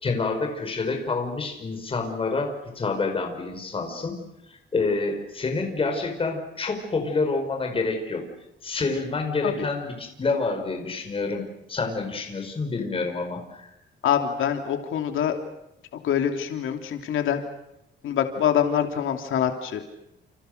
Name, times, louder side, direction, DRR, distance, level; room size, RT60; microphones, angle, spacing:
voice 1, 0.0-4.2 4.5-8.2 8.6-13.7, left 3 dB, 30° left, 4 dB, 5.0 m, -28 dB
voice 2, 14.0-15.3 16.0-17.4 18.0-19.8, left 9 dB, 90° left, 5 dB, 2.9 m, -25 dB
30.0 x 29.0 x 6.6 m, 0.86 s
wide cardioid pair, 165°, 20 cm